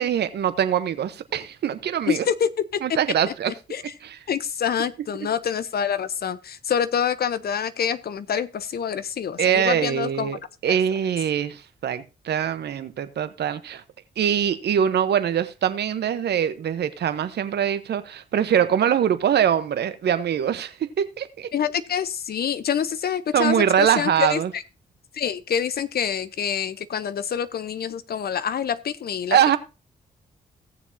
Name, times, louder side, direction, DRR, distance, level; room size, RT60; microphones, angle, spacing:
voice 1, 0.0-2.3 2.8-3.5 4.0-4.2 9.4-13.8 14.2-21.5 23.3-24.5 29.3-29.6, right 9 dB, 70° right, 1.0 m, -23 dB
voice 2, 2.1-2.8 3.5-3.8 4.3-10.3 21.5-24.6 25.1-29.6, left 8 dB, 60° left, 0.8 m, -26 dB
17.0 x 7.0 x 2.8 m
supercardioid pair, 45°, 18 cm